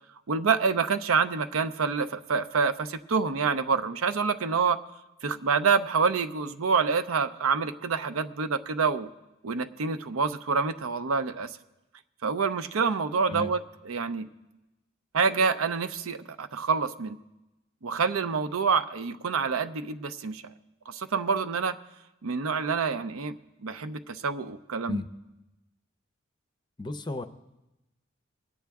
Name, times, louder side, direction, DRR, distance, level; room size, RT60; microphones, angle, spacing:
voice 1, 0.3-4.8 5.2-9.1 9.4-11.6 12.2-13.6 13.9-14.3 15.1-17.2 17.8-20.4 20.9-21.8 22.2-23.4 23.6-25.0, right 5 dB, 90° right, 10 dB, 0.6 m, -27 dB
voice 2, 26.8-27.3, left 2 dB, 20° left, 10 dB, 0.5 m, -33 dB
21.5 x 8.5 x 3.5 m, 0.98 s
head